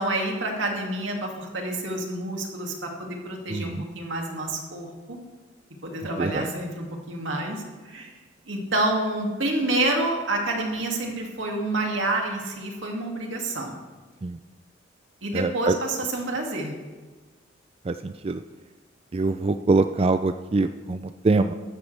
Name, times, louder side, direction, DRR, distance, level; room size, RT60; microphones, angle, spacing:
voice 1, 0.0-5.2 5.8-8.1 8.5-13.8 15.2-16.7, right 2 dB, 85° right, 1 dB, 2.3 m, -28 dB
voice 2, 3.5-3.8 6.2-6.5 14.2-14.4 15.3-15.8 17.9-18.4 19.1-21.5, right 3 dB, 30° right, 9 dB, 0.4 m, -24 dB
14.5 x 12.5 x 3.4 m, 1.3 s
head